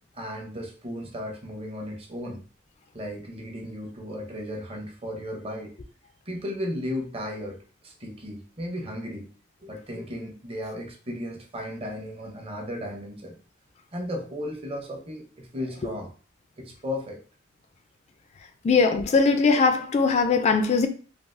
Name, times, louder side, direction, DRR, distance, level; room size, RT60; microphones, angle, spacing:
voice 1, 0.1-2.4 2.9-5.7 6.3-9.3 9.6-13.4 13.9-16.1 16.6-17.2, left 1 dB, 30° right, 0.6 m, -35 dB
voice 2, 18.6-20.9, left 4 dB, 35° left, 0.3 m, -20 dB
3.3 x 2.3 x 2.5 m
head